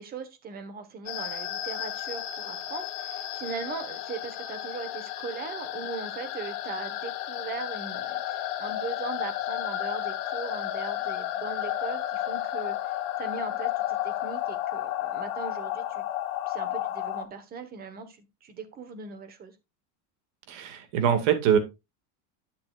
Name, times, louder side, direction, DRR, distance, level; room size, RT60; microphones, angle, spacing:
voice 1, 0.0-16.0 16.5-19.5, right 5 dB, 25° right, 10 dB, 1.3 m, -39 dB
sound 1, 1.1-17.2, left 12 dB, 70° left, 1.8 m, -32 dB
voice 2, 20.5-21.6, right 8 dB, 65° right, 8 dB, 2.2 m, -23 dB
11.5 x 6.9 x 2.5 m, 0.24 s
cardioid pair, 170°, 40 cm